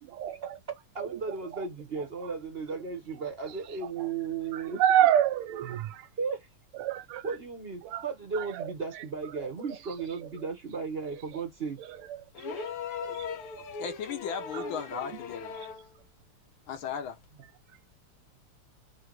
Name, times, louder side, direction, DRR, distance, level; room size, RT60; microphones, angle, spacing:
voice 1, 0.3-4.8 6.2-6.5 7.2-11.8, right 5 dB, 45° right, 0.8 m, -35 dB
voice 2, 4.8-6.0 6.8-7.2 7.9-8.0 13.0-13.2, right 11 dB, 90° right, 1.5 m, -25 dB
sound 1, 12.3-15.9 17.2-17.3, left 5 dB, 90° left, 2.0 m, -38 dB
voice 3, 13.8-15.5 16.7-17.2, left 7 dB, 70° left, 1.7 m, -36 dB
4.4 x 2.6 x 4.5 m
omnidirectional pair, 2.4 m